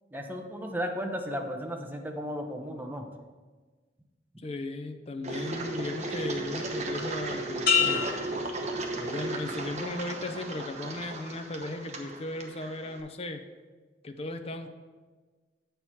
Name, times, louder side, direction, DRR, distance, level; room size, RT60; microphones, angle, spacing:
voice 1, 0.1-3.1, equal, 10° right, 3 dB, 0.7 m, -34 dB
voice 2, 4.4-8.1 9.0-13.4 14.0-14.7, left 2 dB, 35° left, 6 dB, 0.6 m, -36 dB
Engine, 5.2-13.0, right 2 dB, 40° right, 1.0 m, -35 dB
sound 1, 7.7-9.4 9.9-10.4, left 6 dB, 60° left, 1.8 m, -29 dB
8.2 x 4.6 x 5.7 m, 1.4 s
head